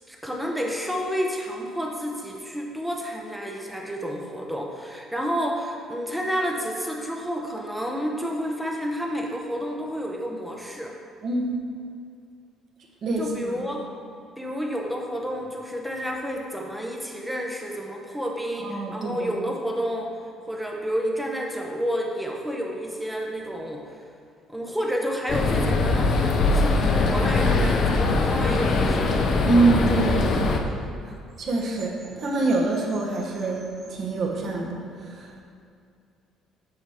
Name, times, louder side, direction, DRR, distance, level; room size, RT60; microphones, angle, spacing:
voice 1, 0.1-10.9 13.2-13.9 14.4-20.2 20.5-23.8 24.5-29.2, equal, 5° right, 0 dB, 0.8 m, -30 dB
voice 2, 11.2-11.6 13.0-13.6 18.6-19.3 29.4-30.5 31.4-35.3, right 3 dB, 45° right, 0 dB, 1.2 m, -25 dB
sound 1, 25.3-30.6, left 3 dB, 50° left, 0.7 m, -21 dB
8.1 x 6.0 x 3.6 m, 2.4 s
cardioid pair, 145°, 0 cm